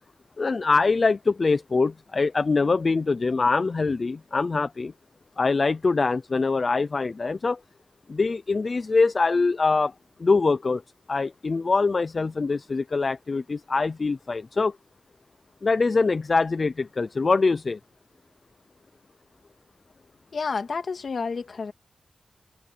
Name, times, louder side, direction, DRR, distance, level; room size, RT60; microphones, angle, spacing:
voice 1, 0.4-4.9 5.4-7.6 8.1-9.9 10.2-10.8 11.1-14.8 15.6-17.8, left 4 dB, 45° left, 0.6 m, -23 dB
voice 2, 20.3-21.7, left 5 dB, 65° left, 2.3 m, -30 dB
wide cardioid pair, 90°, 0 cm